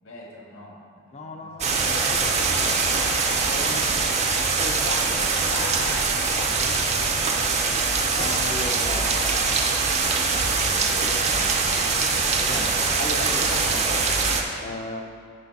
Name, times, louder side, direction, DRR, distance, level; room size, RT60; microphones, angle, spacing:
voice 1, 0.0-0.8 1.1-1.7 5.1-6.0, left 1 dB, 70° left, -3 dB, 1.8 m, -40 dB
voice 2, 1.1-2.8 3.5-4.2 4.6-5.3 6.1-6.9 8.1-9.6 10.4-12.7 13.0-14.1 14.6-15.0, left 2 dB, 30° left, 4 dB, 0.6 m, -37 dB
sound 1, 1.6-14.4, right 4 dB, 30° right, 0.6 m, -23 dB
10.0 x 5.0 x 4.2 m, 2.3 s
head